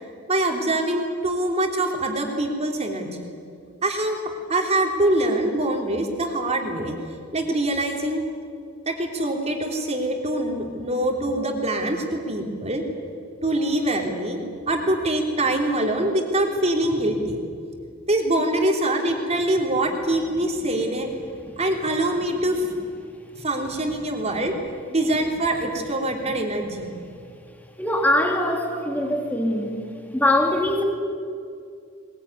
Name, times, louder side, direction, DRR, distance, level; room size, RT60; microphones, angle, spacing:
voice 1, 0.3-3.2 3.8-4.2 4.5-6.9 7.3-8.2 8.8-12.9 13.4-14.4 14.7-17.4 18.1-21.1 21.6-22.7 23.3-24.5 24.9-26.9, right 1 dB, 30° right, 2 dB, 3.3 m, -24 dB
voice 2, 27.8-29.7 30.1-30.8, left 1 dB, 10° left, 2 dB, 3.0 m, -22 dB
21.0 x 21.0 x 9.7 m, 2.4 s
head